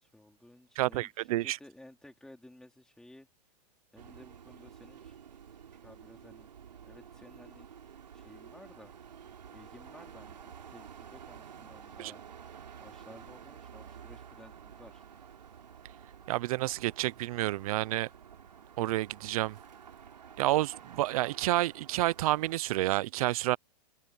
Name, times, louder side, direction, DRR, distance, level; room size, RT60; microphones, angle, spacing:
voice 1, 0.0-3.3 3.9-5.2 5.8-6.5 6.8-7.7 8.1-8.9 9.5-12.2 12.8-15.0, left 1 dB, 5° left, 3.6 m, -55 dB
voice 2, 0.8-1.6 12.0-12.1 16.3-18.1 18.8-19.6 20.4-23.6, right 16 dB, 60° right, 0.9 m, -29 dB
sound 1, 4.0-22.6, right 8 dB, 90° right, 3.4 m, -51 dB
open air
hypercardioid pair, 125°, 21 cm